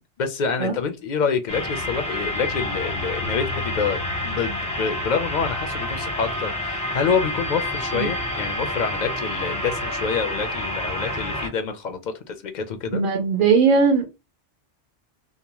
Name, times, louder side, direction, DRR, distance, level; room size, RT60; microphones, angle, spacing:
voice 1, 0.0-13.0, left 6 dB, 60° left, 0.5 m, -27 dB
sound 1, 1.5-11.5, left 1 dB, 10° left, 0.5 m, -28 dB
voice 2, 12.9-14.1, right 5 dB, 55° right, 0.7 m, -19 dB
2.7 x 2.0 x 2.9 m
omnidirectional pair, 1.2 m